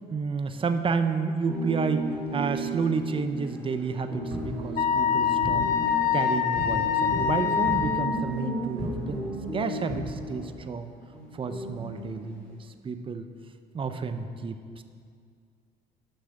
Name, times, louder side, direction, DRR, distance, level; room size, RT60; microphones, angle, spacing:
voice 1, 0.1-2.0 2.3-5.6 6.1-10.9 11.3-12.6 12.8-13.3 13.7-14.8, right 5 dB, 30° right, 9 dB, 0.7 m, -30 dB
sound 1, 1.5-10.4 11.1-12.5, right 1 dB, 5° left, 2.8 m, -35 dB
Schuetzenfest Kapelle, 4.0-10.5, right 1 dB, 80° right, 3.0 m, -37 dB
Wind instrument woodwind instrument, 4.8-8.2, left 8 dB, 50° left, 0.8 m, -25 dB
10.0 x 6.2 x 7.2 m, 2.2 s
supercardioid pair, 100°, 19 cm